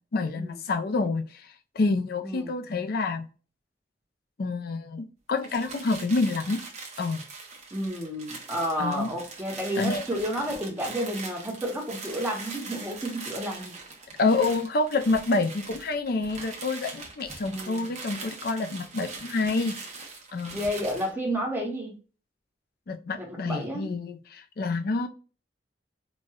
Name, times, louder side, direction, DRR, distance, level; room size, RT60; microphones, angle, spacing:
voice 1, 0.1-1.4 1.8-3.3 4.4-6.6 7.0-7.3 8.8-9.1 9.8-10.0 14.2-19.8 20.3-20.6 22.9-25.1, left 3 dB, 60° left, 0.5 m, -27 dB
voice 2, 2.2-2.5 7.7-13.7 17.4-17.9 20.5-22.0 23.2-23.9, equal, 10° right, 1.0 m, -31 dB
sound 1, 5.4-21.1, right 4 dB, 40° right, 0.8 m, -42 dB
4.2 x 2.2 x 2.3 m
head